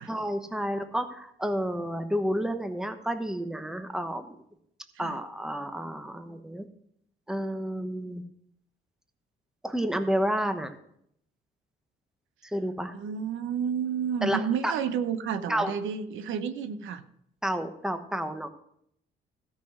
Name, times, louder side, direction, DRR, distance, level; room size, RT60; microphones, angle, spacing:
voice 1, 0.1-4.4 5.0-6.7 7.3-8.2 9.6-10.8 12.4-12.9 14.2-14.7 15.5-15.8 17.4-18.5, equal, 5° right, 8 dB, 1.1 m, -30 dB
voice 2, 12.9-17.0, right 7 dB, 85° right, 9 dB, 0.9 m, -30 dB
13.5 x 5.9 x 6.2 m, 0.72 s
cardioid pair, 90°, 20 cm